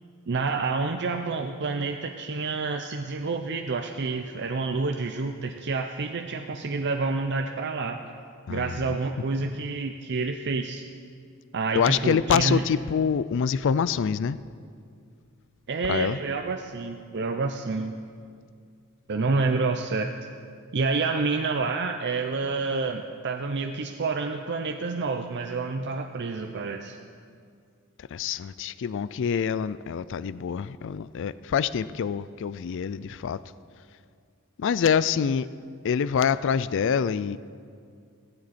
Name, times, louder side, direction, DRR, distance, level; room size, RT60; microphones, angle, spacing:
voice 1, 0.3-8.1 8.5-10.8 11.5-12.6 15.7-18.0 19.1-20.2 20.7-27.0, right 4 dB, 50° right, 5 dB, 0.6 m, -28 dB
voice 2, 8.5-9.0 9.4-9.6 11.8-14.4 15.9-16.2 28.0-33.4 34.6-35.5 35.8-37.4, left 7 dB, 55° left, 16 dB, 0.4 m, -26 dB
16.5 x 15.5 x 4.2 m, 2.2 s
head